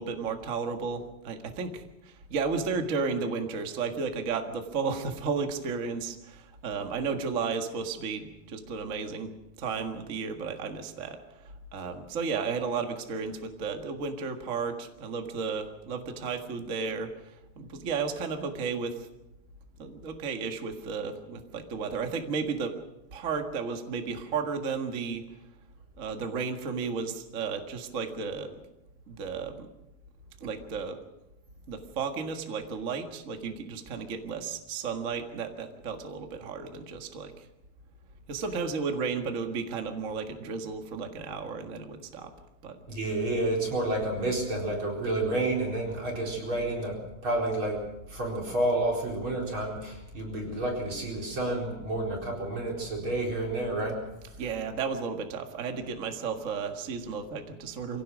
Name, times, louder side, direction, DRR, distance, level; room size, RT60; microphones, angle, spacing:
voice 1, 0.0-9.3 9.6-19.1 19.8-22.8 23.1-25.2 26.0-28.6 29.1-29.7 30.4-31.0 31.7-37.5 38.3-42.3 42.6-42.8 54.4-58.0, right 5 dB, 50° right, 5 dB, 0.9 m, -33 dB
voice 2, 42.9-47.0 47.2-47.8 48.1-54.0, right 1 dB, 35° right, -1 dB, 5.0 m, -30 dB
25.0 x 17.0 x 6.3 m, 0.90 s
omnidirectional pair, 4.3 m